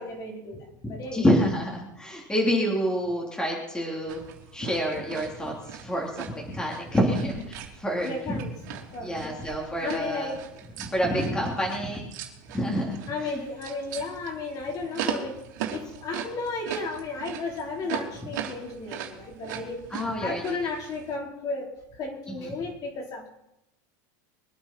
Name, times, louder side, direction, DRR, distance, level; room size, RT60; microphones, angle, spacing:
voice 1, 0.0-1.3 8.0-9.1 9.8-10.5 13.1-15.4 15.7-19.8 20.2-23.3, left 3 dB, 40° left, 0 dB, 4.4 m, -34 dB
voice 2, 0.8-4.2 4.5-8.4 9.0-10.3 10.8-12.1 12.5-13.3 19.9-20.4 22.3-22.5, equal, 10° left, -1 dB, 3.3 m, -28 dB
sound 1, 4.1-21.2, right 9 dB, 70° right, 3.3 m, -39 dB
23.0 x 9.4 x 5.9 m, 0.87 s
supercardioid pair, 135°, 10 cm